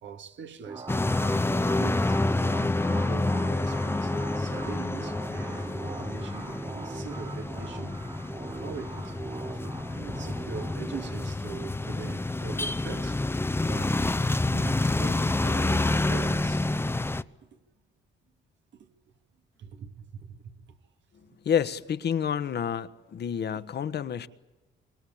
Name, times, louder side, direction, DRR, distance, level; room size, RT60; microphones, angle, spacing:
voice 1, 0.0-2.3 2.9-8.0 8.5-9.2 9.5-13.2 13.6-14.1 14.4-16.7 17.5-17.6 18.7-18.9 19.6-20.6, right 7 dB, 70° right, 2.2 m, -42 dB
sound 1, 0.7-13.9, right 3 dB, 20° right, 1.0 m, -42 dB
sound 2, 0.9-17.2, left 2 dB, 10° left, 0.8 m, -28 dB
voice 2, 21.4-24.3, left 8 dB, 55° left, 1.3 m, -29 dB
25.5 x 23.5 x 8.8 m
cardioid pair, 90°, 20 cm